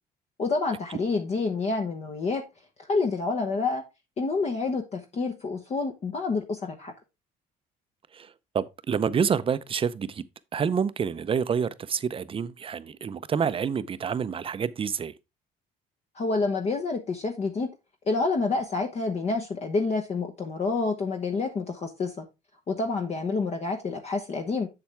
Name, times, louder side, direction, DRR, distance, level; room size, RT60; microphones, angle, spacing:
voice 1, 0.4-2.4 2.9-3.8 4.2-6.9 16.1-17.7 18.1-22.2 22.7-24.7, left 3 dB, 40° left, 1.1 m, -28 dB
voice 2, 8.1-10.2 10.5-15.1, right 7 dB, 35° right, 0.6 m, -28 dB
7.6 x 7.2 x 3.4 m
cardioid pair, 110°, 17 cm